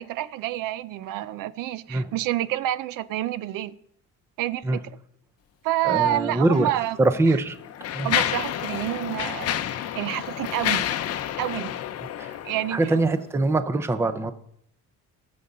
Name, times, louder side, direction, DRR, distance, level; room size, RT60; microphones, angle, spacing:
voice 1, 0.0-3.8 4.4-4.8 5.6-7.0 8.0-9.6 10.0-10.8 11.4-11.7 12.4-12.8, right 14 dB, 80° right, 0.6 m, -28 dB
voice 2, 5.8-6.7 7.0-7.6 7.9-8.1 12.2-12.4 12.7-14.3, right 2 dB, 10° right, 0.4 m, -23 dB
Mechanisms, 6.4-6.6 7.3-13.1, left 11 dB, 50° left, 0.6 m, -29 dB
19.0 x 7.0 x 3.9 m
cardioid pair, 170°, 32 cm